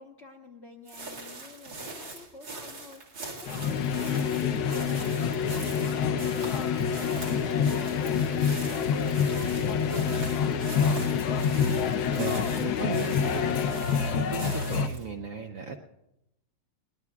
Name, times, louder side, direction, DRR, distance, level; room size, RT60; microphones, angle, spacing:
voice 1, 0.0-3.0 3.6-6.4 6.8-11.0, left 3 dB, 40° left, 1 dB, 1.1 m, -49 dB
sound 1, 0.9-15.1, right 3 dB, 80° right, 2.9 m, -43 dB
sound 2, 3.5-14.9, left 6 dB, 65° left, 1.1 m, -28 dB
sound 3, 3.6-13.9, left 8 dB, 85° left, 1.5 m, -31 dB
voice 2, 11.8-13.6 14.1-15.8, right 6 dB, 55° right, 2 dB, 0.9 m, -36 dB
22.0 x 20.0 x 2.4 m, 0.88 s
omnidirectional pair, 2.1 m